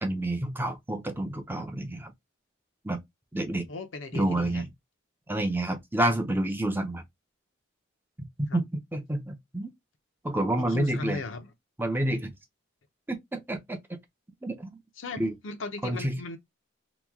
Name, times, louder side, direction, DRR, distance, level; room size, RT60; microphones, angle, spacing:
voice 1, 0.0-2.1 2.8-3.0 3.3-3.7 4.1-4.7 5.3-7.0 8.4-9.7 10.2-11.2 11.8-12.3 13.1-13.8 14.4-14.7 15.2-15.3 15.8-16.2, right 1 dB, 10° right, 0.5 m, -29 dB
voice 2, 3.7-4.6 8.5-8.6 10.7-11.5 15.0-16.4, left 3 dB, 70° left, 0.7 m, -37 dB
3.0 x 2.2 x 3.5 m
head